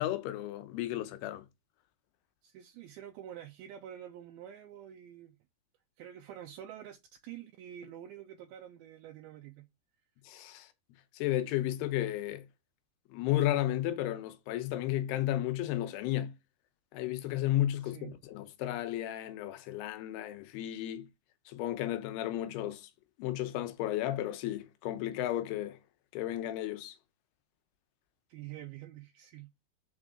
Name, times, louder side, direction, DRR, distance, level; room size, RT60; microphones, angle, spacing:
voice 1, 0.0-1.5 10.3-10.7 11.1-12.5 13.1-16.3 16.9-21.1 21.5-22.9 23.2-25.8 26.1-27.0, left 13 dB, 85° left, 2.7 m, -33 dB
voice 2, 2.4-5.4 6.0-7.0 7.2-9.7 17.8-18.2 28.3-29.5, right 11 dB, 80° right, 2.4 m, -47 dB
6.3 x 4.4 x 3.6 m
omnidirectional pair, 4.6 m